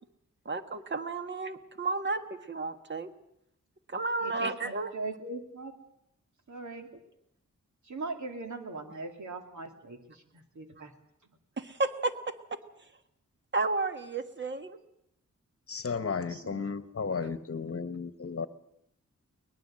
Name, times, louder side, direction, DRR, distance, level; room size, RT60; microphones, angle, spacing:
voice 1, 0.4-3.1 3.9-4.9 11.6-12.6 13.5-14.8, right 3 dB, 35° right, 8 dB, 1.5 m, -32 dB
voice 2, 4.2-5.7 6.5-6.9 7.8-10.9 16.3-16.6, right 3 dB, 70° right, 4 dB, 2.8 m, -40 dB
voice 3, 15.7-18.5, left 5 dB, 50° left, 12 dB, 1.1 m, -34 dB
23.0 x 20.0 x 7.6 m, 0.76 s
wide cardioid pair, 125°, 30 cm